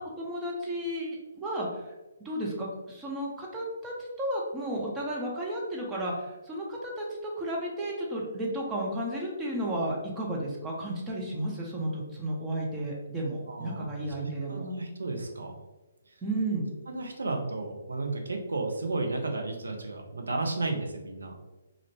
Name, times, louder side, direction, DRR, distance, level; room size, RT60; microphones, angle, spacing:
voice 1, 0.0-1.9 2.2-14.7 16.2-16.6, right 1 dB, 15° right, -3 dB, 0.5 m, -33 dB
voice 2, 13.5-15.6 16.1-16.2 16.9-21.4, right 2 dB, 75° right, 2 dB, 0.5 m, -33 dB
2.5 x 2.1 x 2.9 m, 1.1 s
figure-of-eight pair, 135°, 0 cm